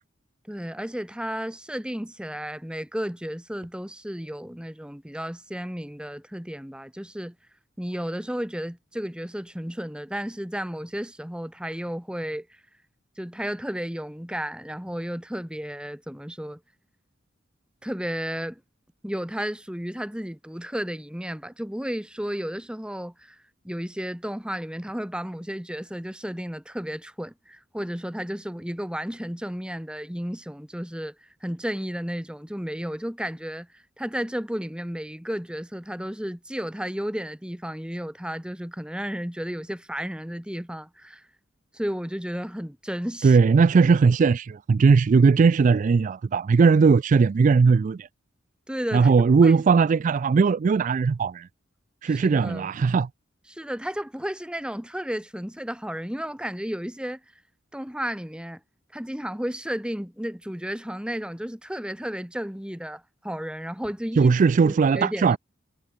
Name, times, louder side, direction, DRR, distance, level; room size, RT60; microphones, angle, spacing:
voice 1, 0.5-7.3 7.8-12.5 13.2-16.6 17.8-18.6 19.0-23.4 23.6-31.1 31.4-33.7 34.0-41.2 41.7-43.4 48.7-49.1 49.4-49.5 52.0-52.7 53.5-57.2 57.7-58.6 58.9-64.3 64.6-65.4, equal, 5° right, 1.6 m, -33 dB
voice 2, 43.2-48.1 48.9-51.5 52.0-53.1 64.2-65.4, right 5 dB, 45° right, 0.3 m, -19 dB
head